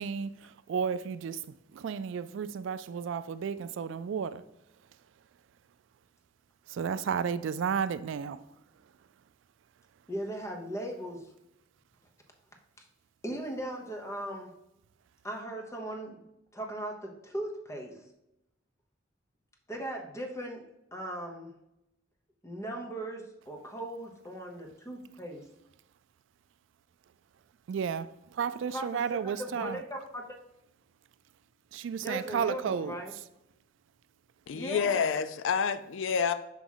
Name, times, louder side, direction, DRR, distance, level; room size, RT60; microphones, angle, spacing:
voice 1, 0.0-4.4 6.7-8.5 27.7-29.8 31.7-33.0, right 7 dB, 70° right, 0.3 m, -33 dB
voice 2, 10.1-11.3 13.2-14.5 15.2-16.2 16.5-17.9 19.7-20.6 20.9-21.5 22.4-25.4 28.7-30.2 32.0-33.1 34.5-35.0, right 1 dB, 15° left, 0.9 m, -38 dB
voice 3, 34.5-36.3, left 6 dB, 70° left, 0.4 m, -28 dB
6.1 x 3.0 x 5.5 m
head